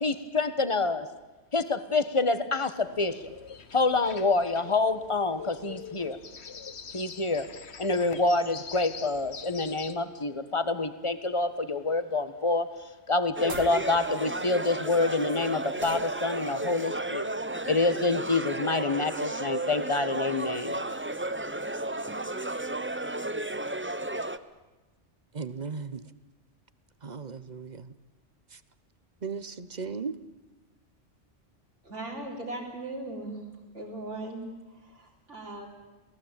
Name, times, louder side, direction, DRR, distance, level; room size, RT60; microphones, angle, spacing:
voice 1, 0.0-1.1 1.5-3.2 3.7-6.2 6.9-7.5 7.8-12.7 13.1-17.3 17.6-20.7, left 3 dB, 25° left, 1.4 m, -27 dB
sound 1, 2.8-9.9, left 6 dB, 65° left, 1.5 m, -44 dB
sound 2, 13.4-24.4, right 2 dB, 10° right, 0.7 m, -33 dB
sound 3, 13.5-13.8 15.8-16.1, right 3 dB, 60° right, 2.5 m, -40 dB
voice 2, 25.3-26.1 27.0-27.9 28.5-28.6 29.2-30.2, right 5 dB, 40° right, 1.1 m, -37 dB
voice 3, 31.8-33.4 33.7-35.7, right 2 dB, 85° right, 4.4 m, -38 dB
28.0 x 18.0 x 9.0 m
omnidirectional pair, 1.2 m